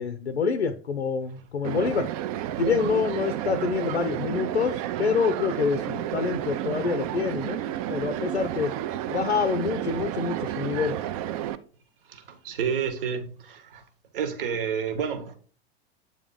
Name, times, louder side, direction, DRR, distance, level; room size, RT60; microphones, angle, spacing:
voice 1, 0.0-2.1 2.6-7.6 7.9-8.7 9.1-11.0, left 5 dB, 85° left, 0.5 m, -26 dB
sound 1, 1.6-11.6, right 12 dB, 35° right, 0.4 m, -31 dB
voice 2, 12.1-13.8 14.1-15.3, right 7 dB, 55° right, 1.1 m, -30 dB
8.1 x 3.6 x 3.7 m
figure-of-eight pair, 85°, 32 cm